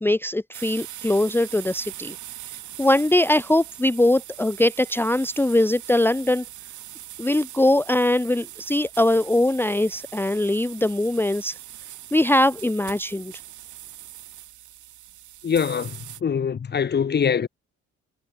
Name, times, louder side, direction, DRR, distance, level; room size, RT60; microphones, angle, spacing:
voice 1, 0.0-2.2 2.8-6.4 7.2-11.5 12.1-13.3, left 1 dB, 5° left, 0.8 m, -21 dB
sound 1, 0.5-16.2, right 13 dB, 75° right, 3.1 m, -41 dB
voice 2, 15.4-17.5, left 7 dB, 35° left, 1.0 m, -23 dB
cardioid pair, 90°, 30 cm